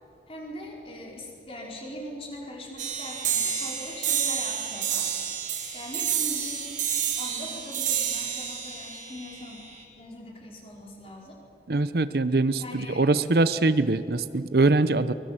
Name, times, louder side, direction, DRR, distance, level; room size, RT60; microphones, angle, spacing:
voice 1, 0.3-5.2 5.7-6.7 7.2-9.6 9.9-11.4 12.6-13.1, left 1 dB, 30° left, -1 dB, 4.9 m, -41 dB
sound 1, 2.8-9.8, right 8 dB, 45° right, 3.0 m, -29 dB
voice 2, 11.7-15.1, right 2 dB, 60° right, 14 dB, 0.7 m, -23 dB
24.0 x 22.0 x 7.7 m, 2.9 s
head